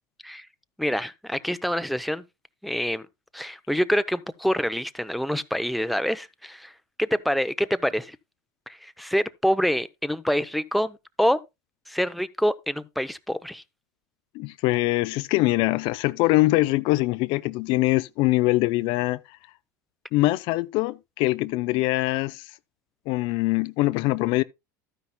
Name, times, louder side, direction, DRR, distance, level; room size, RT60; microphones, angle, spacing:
voice 1, 0.8-2.2 2.6-3.0 3.3-6.7 7.0-8.2 8.7-11.4 11.9-13.6, equal, ahead, 0.6 m, -26 dB
voice 2, 14.3-19.4 20.1-22.5 23.1-24.4, left 20 dB, 55° left, 0.4 m, -23 dB
12.5 x 9.6 x 2.2 m
hypercardioid pair, 100°, 10 cm